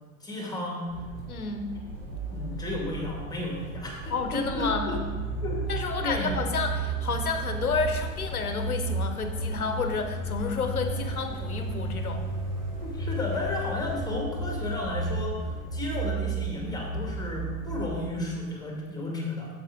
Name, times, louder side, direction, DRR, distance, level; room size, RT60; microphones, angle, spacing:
voice 1, 0.2-0.9 2.3-4.0 4.3-5.0 5.4-5.6 6.0-6.4 12.8-19.5, left 2 dB, 10° left, -1 dB, 2.1 m, -33 dB
sound 1, 0.9-18.0, right 3 dB, 40° right, 2.6 m, -33 dB
voice 2, 1.3-1.6 4.1-4.9 5.7-12.2, left 4 dB, 80° left, 6 dB, 0.9 m, -30 dB
sound 2, 8.0-14.0, equal, 20° right, 2.2 m, -47 dB
8.4 x 7.7 x 3.7 m, 1.3 s
figure-of-eight pair, 85°, 43 cm